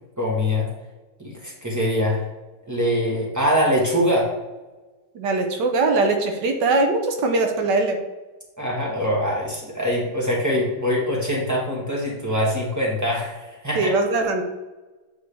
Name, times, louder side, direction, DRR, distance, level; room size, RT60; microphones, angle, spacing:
voice 1, 0.2-0.7 1.2-2.2 2.7-4.3 8.6-13.9, equal, 10° right, -3 dB, 1.3 m, -23 dB
voice 2, 5.1-8.0 13.8-14.4, right 3 dB, 85° right, 4 dB, 1.5 m, -21 dB
8.5 x 3.8 x 3.4 m, 1.1 s
omnidirectional pair, 1.9 m